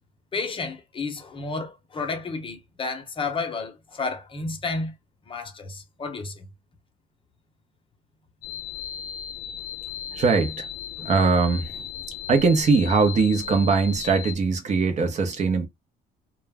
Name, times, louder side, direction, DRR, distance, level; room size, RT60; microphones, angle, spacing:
voice 1, 0.3-4.9 5.3-6.5, left 3 dB, 30° left, 0.8 m, -31 dB
sound 1, 8.4-14.3, left 8 dB, 65° left, 0.7 m, -36 dB
voice 2, 10.1-10.7 11.0-11.8 12.3-15.7, right 4 dB, 45° right, 0.8 m, -21 dB
2.3 x 2.1 x 3.4 m
cardioid pair, 110°, 17 cm